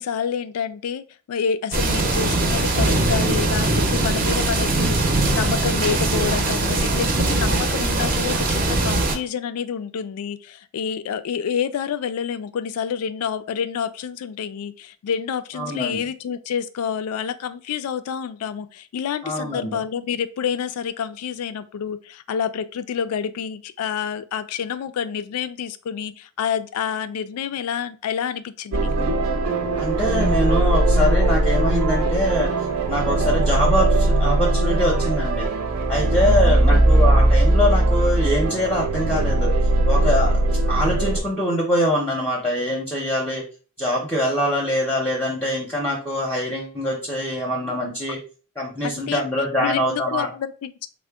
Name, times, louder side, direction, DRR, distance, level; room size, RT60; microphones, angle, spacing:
voice 1, 0.0-28.9 36.4-36.8 48.8-49.3 49.6-50.9, left 7 dB, 80° left, 0.3 m, -28 dB
sound 1, 1.7-9.1, right 2 dB, 40° right, 0.6 m, -21 dB
voice 2, 15.6-16.0 19.2-19.8 29.8-32.5 32.9-35.5 35.9-39.5 39.9-40.4 40.7-43.4 43.8-48.2 48.6-50.3, equal, 5° left, 0.6 m, -24 dB
sound 2, 28.7-41.2, right 1 dB, 80° right, 0.6 m, -19 dB
3.7 x 2.1 x 3.4 m
head